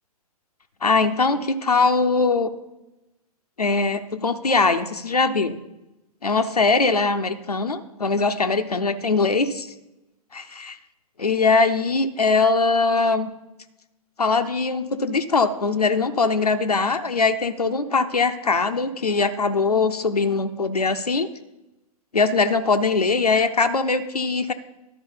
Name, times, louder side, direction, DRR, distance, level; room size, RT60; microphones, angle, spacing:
voice 1, 0.8-2.5 3.6-5.6 6.2-9.7 10.3-10.8 11.2-13.3 14.2-21.3 22.1-24.5, left 4 dB, 85° left, 8 dB, 0.6 m, -21 dB
11.5 x 4.7 x 5.5 m, 0.99 s
figure-of-eight pair, 110°, 19 cm